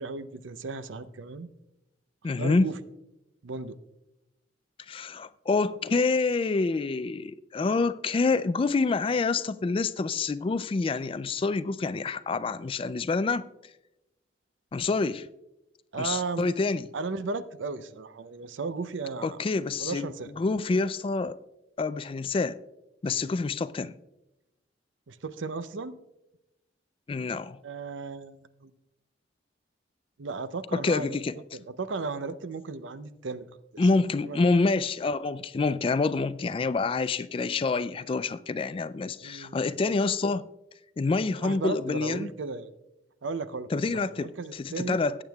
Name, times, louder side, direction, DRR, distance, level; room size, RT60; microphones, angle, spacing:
voice 1, 0.0-1.5 2.4-2.8 3.4-3.8 15.9-16.5 16.9-19.4 19.8-20.3 23.2-23.3 25.1-26.0 27.6-28.7 30.2-31.2 31.5-33.5 34.2-34.5 39.2-39.8 41.4-42.7 43.2-45.0, right 4 dB, 85° right, 0.6 m, -35 dB
voice 2, 2.2-2.7 4.9-13.5 14.7-15.3 16.0-16.9 19.2-20.1 20.4-21.4 21.8-22.6 23.0-23.9 27.1-27.6 30.7-31.3 33.8-40.5 41.0-42.3 43.7-45.2, left 3 dB, 30° left, 0.3 m, -27 dB
18.0 x 8.7 x 2.3 m
head